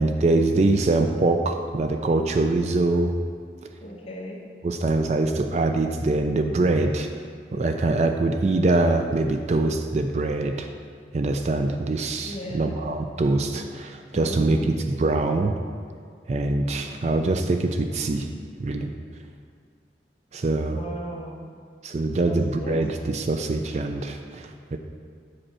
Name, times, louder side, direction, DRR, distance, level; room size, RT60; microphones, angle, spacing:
voice 1, 0.0-3.1 4.6-7.1 7.5-10.7 11.1-15.5 16.3-18.3 18.6-18.9 20.3-20.8 21.8-24.8, right 2 dB, 40° right, 6 dB, 0.4 m, -23 dB
voice 2, 3.8-4.4 12.3-12.7 14.1-14.7 20.7-21.5 22.2-22.8, equal, 35° left, -2 dB, 1.1 m, -36 dB
7.7 x 4.4 x 6.2 m, 2.1 s
head